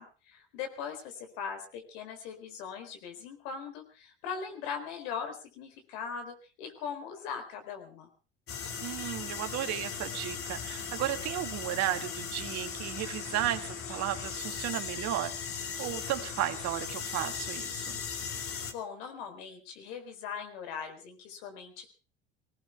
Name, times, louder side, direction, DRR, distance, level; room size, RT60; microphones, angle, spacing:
voice 1, 0.0-8.1 18.3-18.4 18.6-21.9, left 6 dB, 75° left, 6 dB, 4.2 m, -40 dB
sound 1, 8.5-18.7, left 6 dB, 45° left, 2.7 m, -38 dB
voice 2, 8.8-15.3 15.8-18.0, right 14 dB, 60° right, 8 dB, 2.1 m, -34 dB
21.0 x 18.0 x 3.6 m, 0.35 s
hypercardioid pair, 80°, 30 cm